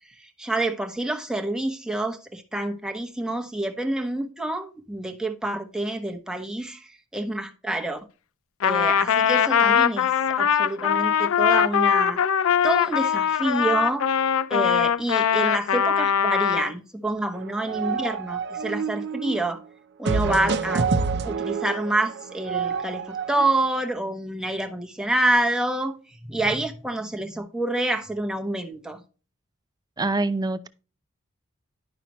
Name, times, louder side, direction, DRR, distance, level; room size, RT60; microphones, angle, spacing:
voice 1, 0.2-8.0 8.6-10.1 10.4-12.2 12.6-19.6 20.0-20.9 21.2-26.0 26.2-29.0, right 1 dB, 5° right, 1.0 m, -27 dB
Trumpet, 8.6-16.7, left 8 dB, 85° left, 0.4 m, -21 dB
sound 1, 17.4-19.5 20.1-23.4, right 5 dB, 55° right, 0.7 m, -27 dB
voice 2, 30.0-30.7, right 2 dB, 20° right, 0.5 m, -25 dB
10.5 x 5.7 x 3.0 m
head